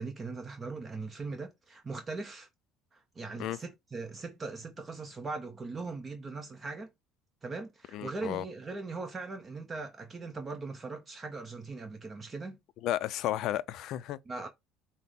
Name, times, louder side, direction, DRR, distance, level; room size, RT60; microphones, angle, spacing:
voice 1, 0.0-2.5 2.9-6.9 7.4-12.6 14.3-14.5, right 3 dB, 20° right, 0.6 m, -40 dB
voice 2, 7.9-8.4 12.8-14.2, left 13 dB, 55° left, 0.3 m, -33 dB
5.8 x 2.0 x 3.6 m
cardioid pair, 135°, 0 cm